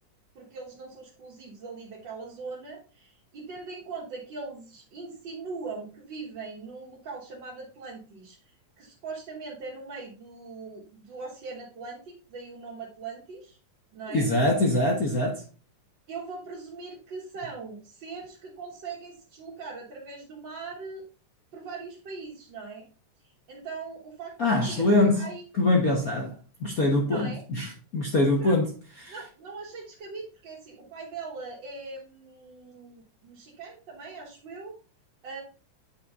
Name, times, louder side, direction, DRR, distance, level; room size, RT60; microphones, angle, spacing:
voice 1, 0.4-13.6 13.9-14.3 16.1-21.0 21.5-22.9 23.2-24.3 24.7-25.4 27.1-27.4 28.4-28.6 29.1-34.8 35.2-35.4, right 4 dB, 45° right, 1.9 m, -41 dB
voice 2, 14.1-15.4 24.4-25.2 25.6-28.7 29.0-29.1, left 2 dB, 75° left, 0.8 m, -24 dB
8.7 x 4.5 x 3.7 m
omnidirectional pair, 3.5 m